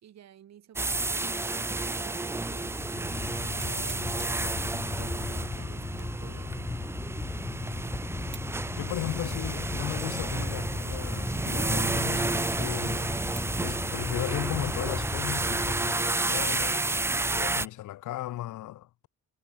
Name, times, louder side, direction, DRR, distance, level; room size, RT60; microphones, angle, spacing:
voice 1, 0.0-3.0 3.4-4.2 4.9-6.8, right 10 dB, 60° right, 2.2 m, -50 dB
sound 1, 0.8-17.7, right 2 dB, 10° right, 0.4 m, -31 dB
sound 2, 2.4-15.8, left 5 dB, 25° left, 1.0 m, -37 dB
sound 3, 3.6-4.5 5.9-6.3 6.8-6.9 8.3-8.6 9.2-9.3 10.0-10.1 11.1-11.4 11.7-11.8 12.5-12.6 13.3-13.6 13.9-15.3 15.8-16.0 16.5-16.9, right 6 dB, 40° right, 2.0 m, -51 dB
voice 2, 8.7-13.1 13.6-19.1, left 15 dB, 75° left, 1.2 m, -36 dB
cardioid pair, 90°, 30 cm